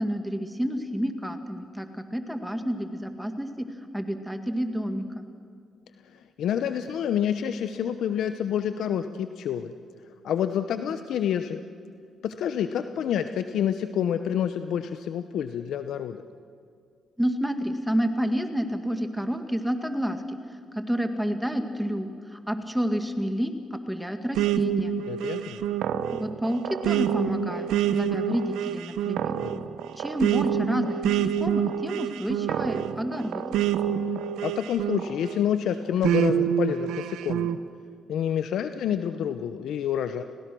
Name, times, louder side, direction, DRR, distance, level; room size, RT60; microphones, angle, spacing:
voice 1, 0.0-3.7 3.9-5.3 17.2-20.4 20.7-24.9 26.1-29.4 30.0-33.4, equal, 5° right, 7 dB, 2.1 m, -29 dB
voice 2, 6.1-9.7 10.2-11.6 12.2-16.2 25.1-25.7 29.4-29.7 34.4-37.5 38.1-40.2, left 9 dB, 80° left, 9 dB, 0.9 m, -28 dB
sound 1, 24.4-35.4 36.0-37.6, right 9 dB, 90° right, 0.9 m, -27 dB
30.0 x 19.5 x 6.2 m, 2.3 s
cardioid pair, 85°, 0 cm